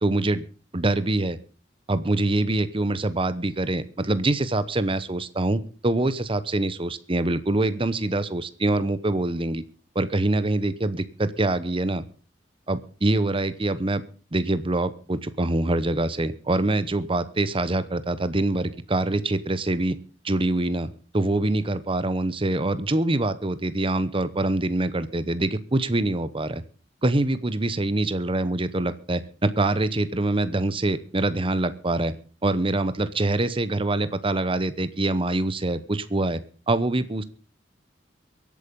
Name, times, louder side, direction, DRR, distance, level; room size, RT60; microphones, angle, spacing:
voice 1, 0.0-0.4 0.7-1.4 1.9-9.6 9.9-12.0 12.7-14.0 14.3-20.0 20.2-26.6 27.0-32.2 32.4-36.4 36.7-37.2, right 2 dB, 30° right, 14 dB, 0.9 m, -25 dB
23.0 x 8.6 x 5.3 m, 0.38 s
head